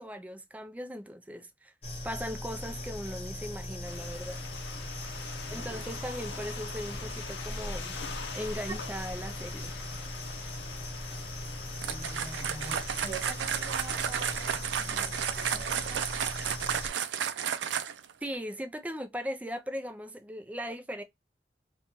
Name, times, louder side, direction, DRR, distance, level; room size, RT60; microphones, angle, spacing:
voice 1, 0.0-1.7 2.0-4.4 5.5-8.0 8.3-9.7 18.2-21.0, equal, 10° right, 0.4 m, -38 dB
sound 1, 1.8-16.9, left 1 dB, 35° left, 0.9 m, -39 dB
sound 2, 3.8-14.4, left 5 dB, 85° left, 0.6 m, -45 dB
voice 2, 5.5-5.9 8.7-8.8 11.8-16.2, right 3 dB, 25° right, 0.8 m, -45 dB
sound 3, 11.8-18.1, right 8 dB, 85° right, 0.4 m, -32 dB
2.6 x 2.3 x 2.9 m
head